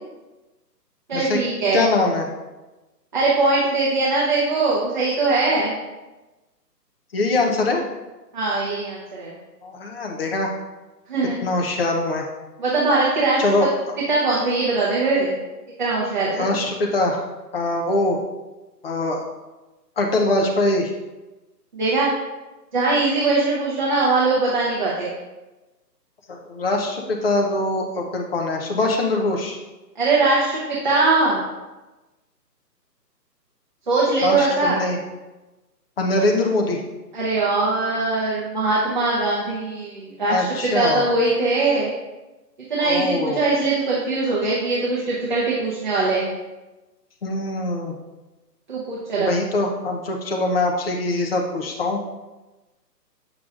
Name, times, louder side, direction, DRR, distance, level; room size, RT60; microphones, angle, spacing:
voice 1, 1.1-1.9 3.1-5.8 8.3-9.3 11.1-11.4 12.6-13.4 14.0-15.3 15.8-16.5 21.7-22.1 22.7-25.1 30.0-31.4 33.9-34.8 37.1-41.9 42.7-46.3 48.7-49.3, right 3 dB, 30° right, -6 dB, 0.8 m, -21 dB
voice 2, 1.7-2.3 7.1-7.8 9.6-10.5 11.4-12.3 13.4-13.7 16.4-17.2 17.5-18.2 18.8-19.3 20.0-20.9 26.3-29.6 34.2-35.0 36.0-36.8 40.3-41.0 42.8-43.4 47.2-47.9 49.2-52.0, left 2 dB, 35° left, 1 dB, 0.7 m, -22 dB
7.7 x 6.2 x 2.5 m, 1.1 s
hypercardioid pair, 160°, 50 cm